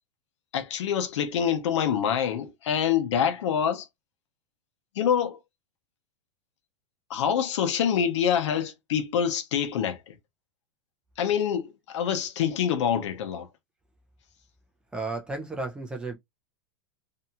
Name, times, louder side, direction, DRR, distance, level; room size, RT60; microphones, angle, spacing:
voice 1, 0.5-3.9 5.0-5.4 7.1-10.2 11.2-13.5, left 8 dB, 80° left, 0.7 m, -26 dB
voice 2, 14.9-16.1, right 3 dB, 5° right, 0.4 m, -33 dB
2.7 x 2.3 x 2.8 m
supercardioid pair, 165°, 15 cm